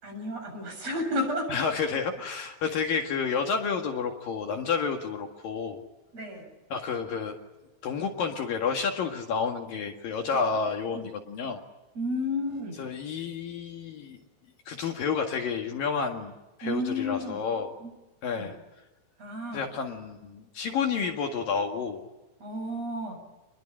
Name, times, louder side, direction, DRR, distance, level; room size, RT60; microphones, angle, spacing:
voice 1, 0.0-1.7 6.1-6.5 10.9-11.1 11.9-12.8 16.6-17.4 17.8-17.9 18.4-18.5 19.2-19.7 22.4-23.2, left 1 dB, 40° right, 3 dB, 8.6 m, -32 dB
voice 2, 1.5-5.8 6.7-7.4 7.8-11.6 12.8-14.2 14.7-16.3 16.6-17.7 18.2-18.6 19.5-22.0, left 5 dB, 60° left, 3 dB, 3.4 m, -30 dB
28.5 x 22.0 x 9.0 m, 1.0 s
omnidirectional pair, 4.8 m